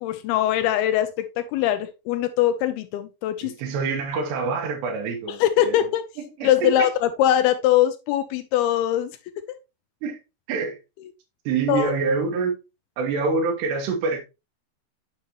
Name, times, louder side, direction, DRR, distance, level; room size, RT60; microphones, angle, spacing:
voice 1, 0.0-3.5 5.3-6.0 6.4-9.2 11.7-12.0, left 12 dB, 80° left, 2.3 m, -22 dB
voice 2, 3.4-5.8 6.4-6.9 10.0-10.2 10.5-10.8 11.5-12.5 13.0-14.2, right 4 dB, 80° right, 3.4 m, -26 dB
7.7 x 5.4 x 2.9 m
omnidirectional pair, 4.9 m